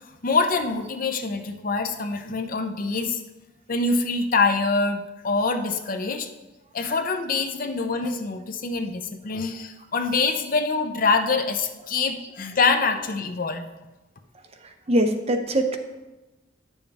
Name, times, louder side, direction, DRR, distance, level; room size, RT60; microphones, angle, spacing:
voice 1, 0.2-3.2 3.7-5.0 5.2-6.3 6.7-13.6, left 4 dB, 50° left, 7 dB, 0.7 m, -25 dB
voice 2, 14.9-15.8, right 1 dB, 35° right, 5 dB, 0.8 m, -22 dB
10.0 x 7.1 x 3.5 m, 1.1 s
head